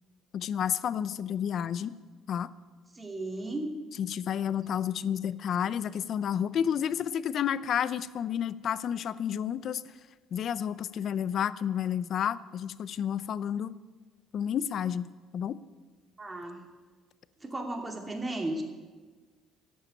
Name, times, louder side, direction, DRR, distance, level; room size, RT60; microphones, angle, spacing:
voice 1, 0.3-1.9 2.3-2.5 4.0-9.8 10.3-13.7 14.3-15.6, left 9 dB, 55° left, 16 dB, 0.6 m, -30 dB
voice 2, 2.9-3.7 16.2-16.7 17.4-18.6, right 2 dB, 20° right, 3 dB, 2.4 m, -35 dB
12.5 x 8.8 x 8.7 m, 1.4 s
cardioid pair, 100°, 0 cm